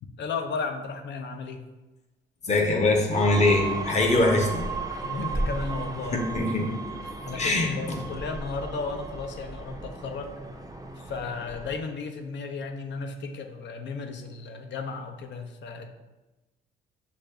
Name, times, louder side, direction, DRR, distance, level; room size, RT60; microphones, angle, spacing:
voice 1, 0.2-1.6 4.9-6.3 7.0-10.4 11.0-15.9, left 4 dB, 65° left, 6 dB, 0.6 m, -34 dB
voice 2, 2.4-4.7 6.1-6.7 7.3-8.0, left 2 dB, 35° left, 1 dB, 0.9 m, -23 dB
sound 1, 3.1-11.8, right 3 dB, 20° right, 0.5 m, -35 dB
5.9 x 2.6 x 3.3 m, 1.1 s
cardioid pair, 90°, 20 cm